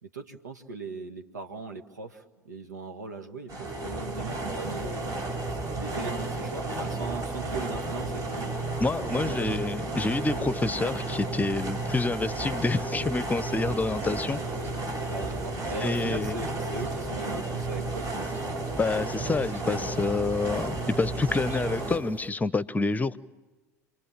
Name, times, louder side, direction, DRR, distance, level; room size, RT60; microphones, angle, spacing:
voice 1, 0.0-5.1 5.8-9.6 15.0-18.6, right 4 dB, 85° right, 1.7 m, -39 dB
sound 1, 3.5-22.0, right 2 dB, 40° right, 7.5 m, -32 dB
voice 2, 8.8-14.4 15.8-16.3 18.8-23.2, left 3 dB, 15° left, 0.9 m, -28 dB
sound 2, 13.6-22.3, right 1 dB, 20° right, 3.2 m, -47 dB
29.5 x 23.0 x 7.4 m
figure-of-eight pair, 70°, 9 cm